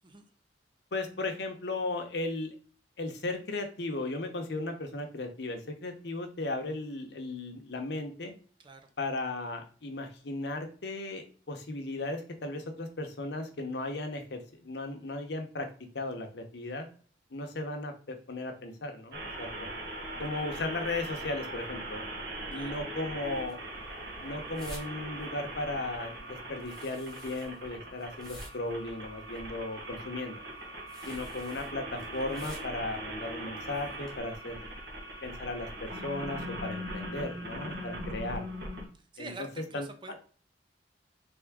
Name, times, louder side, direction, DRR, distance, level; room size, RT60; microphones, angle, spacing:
voice 1, 0.9-2.5 3.0-8.3 9.0-15.7 15.9-16.9 17.3-19.7 20.2-22.1 22.5-23.6 24.2-30.4 31.0-34.7 35.2-38.5 39.2-39.5 39.7-39.9, left 2 dB, 70° left, 5 dB, 0.8 m, -36 dB
voice 2, 8.6-8.9 22.5-22.8 38.9-40.2, right 3 dB, 30° right, 6 dB, 0.6 m, -46 dB
sound 1, 19.1-38.9, right 1 dB, 65° right, 1.5 m, -40 dB
sound 2, 23.3-34.2, equal, 5° left, 1.2 m, -53 dB
3.7 x 3.5 x 3.5 m, 0.42 s
head